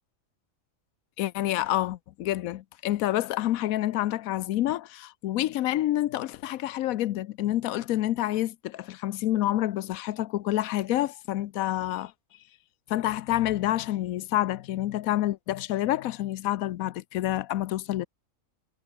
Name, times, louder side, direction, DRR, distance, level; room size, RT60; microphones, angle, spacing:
voice 1, 1.2-12.1 12.9-18.1, left 14 dB, 90° left, 1.1 m, -28 dB
omnidirectional pair, 1.4 m